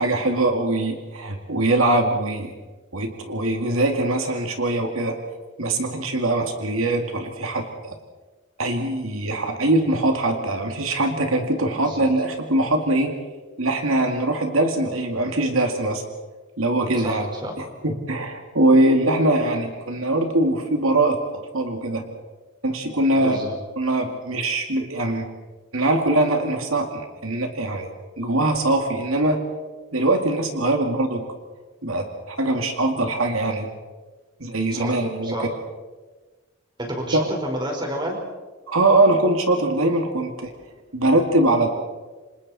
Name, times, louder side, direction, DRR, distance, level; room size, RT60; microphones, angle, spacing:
voice 1, 0.0-2.5 2.9-5.2 5.6-7.6 8.6-13.1 13.6-16.0 16.6-17.3 17.6-21.2 21.5-22.0 22.6-23.4 23.8-25.3 25.7-27.9 28.2-29.4 29.9-31.2 31.8-33.7 34.4-35.5 37.1-37.2 38.7-40.5 40.9-41.7, right 2 dB, 80° right, 4 dB, 2.4 m, -22 dB
voice 2, 11.7-12.0 16.9-17.5 23.1-23.5 34.7-35.5 36.8-38.2, right 1 dB, 20° right, 1 dB, 4.7 m, -30 dB
29.0 x 26.0 x 4.3 m, 1.3 s
head